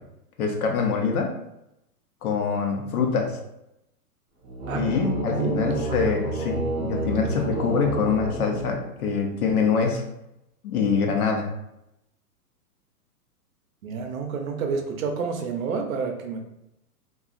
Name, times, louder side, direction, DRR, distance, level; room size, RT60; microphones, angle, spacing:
voice 1, 0.4-1.4 2.2-3.4 4.7-10.0 10.6-11.5, left 5 dB, 65° left, 2 dB, 0.8 m, -24 dB
sound 1, 4.4-9.2, right 2 dB, 20° right, 0.4 m, -30 dB
voice 2, 5.3-5.8 13.8-16.4, right 5 dB, 60° right, 4 dB, 0.6 m, -29 dB
2.8 x 2.4 x 2.4 m, 0.85 s
hypercardioid pair, 150°, 46 cm